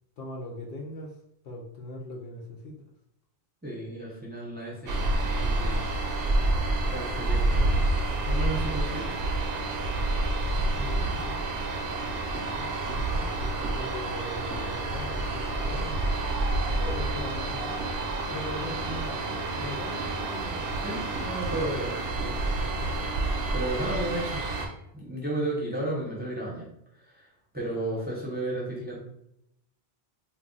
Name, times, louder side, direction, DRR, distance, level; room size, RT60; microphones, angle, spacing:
voice 1, 0.2-1.1 1.4-2.8 10.8-11.4 12.3-16.1 16.7-18.0 18.3-20.8 27.7-28.0, left 2 dB, 65° left, -1 dB, 0.7 m, -40 dB
voice 2, 3.6-5.8 6.9-7.9 8.2-9.2 10.6-10.9 20.8-22.0 22.2-22.4 23.5-24.4 24.9-26.7 27.1-27.2 27.5-29.0, right 1 dB, 10° right, -4 dB, 0.6 m, -33 dB
sound 1, 4.9-24.7, right 2 dB, 70° right, 0.8 m, -28 dB
2.3 x 2.3 x 3.7 m, 0.78 s
omnidirectional pair, 1.1 m